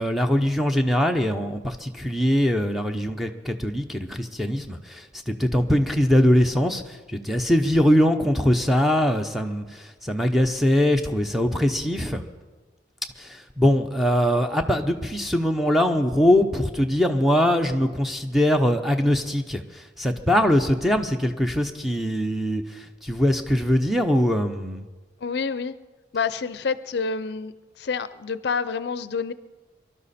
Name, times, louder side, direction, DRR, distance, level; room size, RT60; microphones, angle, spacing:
voice 1, 0.0-12.2 13.2-24.8, equal, ahead, 5 dB, 0.7 m, -22 dB
voice 2, 25.2-25.7 26.1-27.5 27.8-29.3, left 5 dB, 65° left, 15 dB, 0.5 m, -28 dB
23.5 x 12.0 x 4.2 m, 1.3 s
head